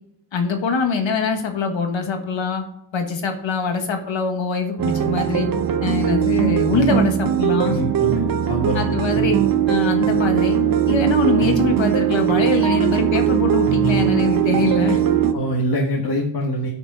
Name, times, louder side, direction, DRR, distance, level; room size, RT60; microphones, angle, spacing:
voice 1, 0.3-2.6 2.9-5.5 5.8-7.8 8.7-9.4 9.7-10.6 10.9-15.0, left 4 dB, 65° left, 5 dB, 1.6 m, -23 dB
sound 1, 4.8-15.3, right 10 dB, 45° right, 0.7 m, -19 dB
voice 2, 7.6-9.0 15.3-16.7, equal, 50° left, 0 dB, 1.5 m, -24 dB
9.8 x 6.1 x 4.8 m, 0.76 s
wide cardioid pair, 150°, 49 cm